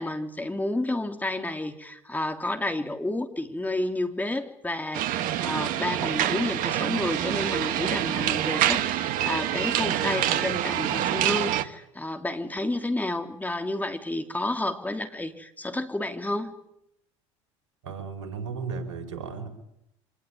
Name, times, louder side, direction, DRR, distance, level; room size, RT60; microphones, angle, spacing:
voice 1, 0.0-16.5, left 1 dB, 10° left, 6 dB, 3.2 m, -30 dB
sound 1, 4.9-11.6, right 12 dB, 60° right, 1.5 m, -26 dB
voice 2, 17.8-19.5, right 5 dB, 80° right, 6 dB, 5.0 m, -35 dB
26.0 x 19.0 x 9.3 m, 0.82 s
hypercardioid pair, 70°, 16 cm